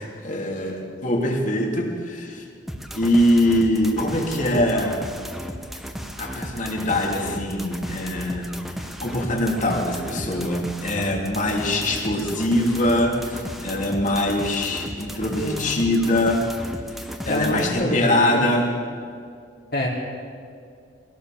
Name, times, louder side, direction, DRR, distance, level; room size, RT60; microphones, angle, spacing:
voice 1, 0.0-2.4 2.9-5.0 6.2-8.5 8.8-16.4 17.3-18.7, left 1 dB, 45° left, 0 dB, 3.3 m, -23 dB
sound 1, 2.7-17.7, equal, ahead, 1.4 m, -35 dB
voice 2, 15.4-15.8 17.3-18.5 19.7-19.9, left 1 dB, 60° left, -7 dB, 4.0 m, -26 dB
23.5 x 17.5 x 7.0 m, 2.3 s
head